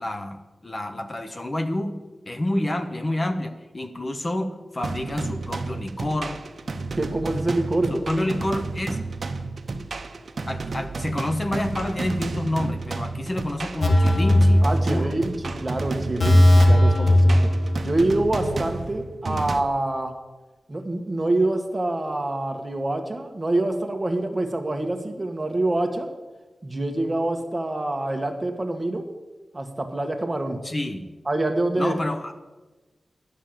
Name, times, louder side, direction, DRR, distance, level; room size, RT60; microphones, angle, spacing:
voice 1, 0.0-2.0 2.3-6.4 7.9-9.0 10.5-15.2 30.6-31.1 31.7-32.3, left 1 dB, 30° left, 7 dB, 0.8 m, -28 dB
sound 1, 4.8-19.6, right 3 dB, 55° right, 0.8 m, -32 dB
voice 2, 6.9-8.2 14.6-17.5 17.8-20.1 20.7-26.1 26.6-29.1 29.5-30.6 31.2-31.9, right 2 dB, 20° right, 5 dB, 1.4 m, -26 dB
sound 2, 13.8-15.4 15.6-15.8 16.2-18.1 18.4-18.5, left 1 dB, 55° left, 1.9 m, -17 dB
11.0 x 6.4 x 8.8 m, 1.2 s
wide cardioid pair, 105°, 0 cm